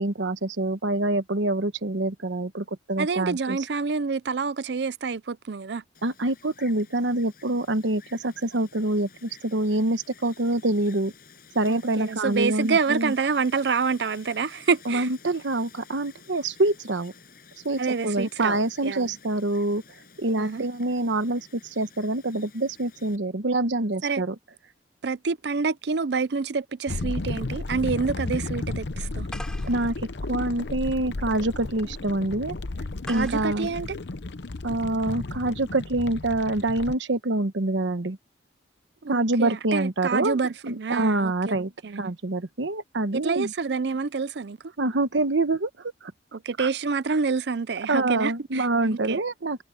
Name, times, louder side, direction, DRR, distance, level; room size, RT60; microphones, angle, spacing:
voice 1, 0.0-3.6 6.0-11.1 11.5-13.1 14.9-17.1 17.6-19.8 20.2-24.3 29.7-29.9 30.3-32.5 33.1-33.7 34.6-38.2 39.1-40.4 40.6-43.5 44.8-45.7 46.0-46.1 46.6-46.7 47.9-49.6, right 2 dB, 85° right, 1.1 m, -26 dB
voice 2, 3.0-5.8 11.7-15.1 17.8-19.1 20.4-20.6 24.0-24.2 25.0-29.3 33.1-34.0 39.0-42.1 43.1-44.6 46.3-49.2, right 5 dB, 70° right, 0.5 m, -27 dB
Wind, 5.9-23.2, left 6 dB, 50° left, 6.0 m, -52 dB
sound 1, 26.9-37.0, left 2 dB, 75° left, 0.8 m, -33 dB
sound 2, 29.3-34.9, left 1 dB, 5° left, 3.3 m, -46 dB
head